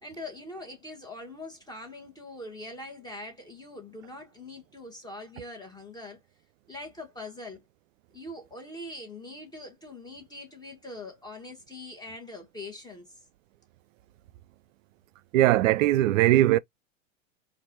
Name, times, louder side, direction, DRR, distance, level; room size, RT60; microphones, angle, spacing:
voice 1, 0.0-6.2 6.7-7.6 8.1-13.2, left 2 dB, 10° left, 1.4 m, -42 dB
voice 2, 15.3-16.6, right 15 dB, 70° right, 0.5 m, -20 dB
4.4 x 2.5 x 3.0 m
hypercardioid pair, 115°, 40 cm